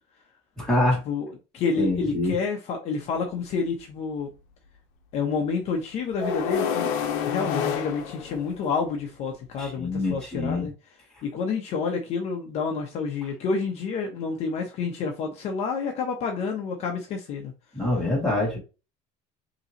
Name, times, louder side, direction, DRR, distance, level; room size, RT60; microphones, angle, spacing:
voice 1, 0.6-1.0 1.8-2.3 9.6-10.7 17.7-18.6, left 2 dB, 5° left, 2.1 m, -25 dB
voice 2, 1.5-4.3 5.1-6.9 7.3-10.7 11.2-17.5, left 5 dB, 45° left, 0.9 m, -29 dB
sound 1, 3.0-3.1 6.2-8.9, left 7 dB, 85° left, 1.0 m, -28 dB
5.4 x 3.0 x 2.9 m
cardioid pair, 165°, 15 cm